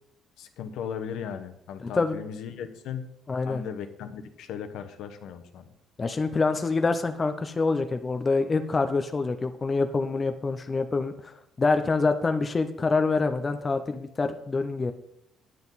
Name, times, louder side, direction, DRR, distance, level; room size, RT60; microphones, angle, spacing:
voice 1, 0.4-3.1 3.5-5.7, left 7 dB, 75° left, 9 dB, 1.0 m, -37 dB
voice 2, 1.8-2.2 3.3-3.6 6.0-14.9, left 3 dB, 25° left, 8 dB, 0.6 m, -26 dB
9.3 x 9.0 x 4.1 m, 0.76 s
cardioid pair, 135°, 0 cm